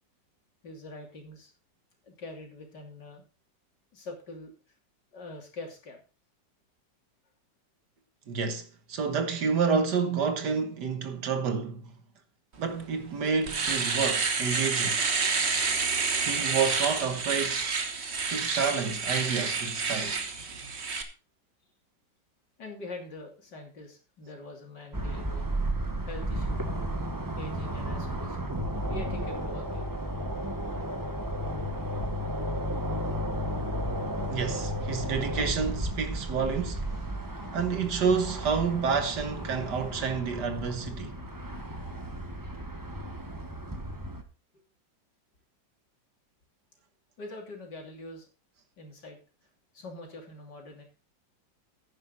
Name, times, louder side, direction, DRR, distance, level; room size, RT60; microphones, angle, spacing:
voice 1, 0.6-1.5 2.0-3.2 3.9-4.5 5.1-6.0 22.6-25.5 26.0-26.6 27.4-28.5 28.9-29.9 44.5-44.6 47.2-48.3 48.8-49.2 49.7-50.8, left 2 dB, 65° left, 3.5 m, -44 dB
voice 2, 8.3-11.9 12.6-15.0 16.2-17.6 18.3-20.2 34.3-36.9 37.5-41.2, right 5 dB, 65° right, 1.8 m, -29 dB
Domestic sounds home sounds, 12.8-12.9 13.3-21.0, right 4 dB, 40° right, 1.4 m, -29 dB
sound 1, 24.9-44.2, equal, 15° right, 1.0 m, -33 dB
10.5 x 9.9 x 4.0 m
omnidirectional pair, 2.0 m